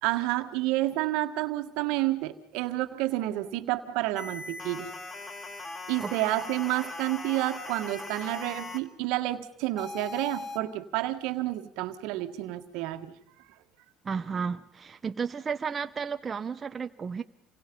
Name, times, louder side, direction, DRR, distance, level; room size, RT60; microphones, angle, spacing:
voice 1, 0.0-4.9 5.9-13.1, right 16 dB, 75° right, 8 dB, 1.7 m, -30 dB
sound 1, 4.2-8.8 9.8-10.6, left 2 dB, 30° left, 2.8 m, -40 dB
voice 2, 14.0-17.2, right 6 dB, 30° right, 8 dB, 1.0 m, -33 dB
29.0 x 25.0 x 5.5 m, 0.76 s
supercardioid pair, 85°, 0 cm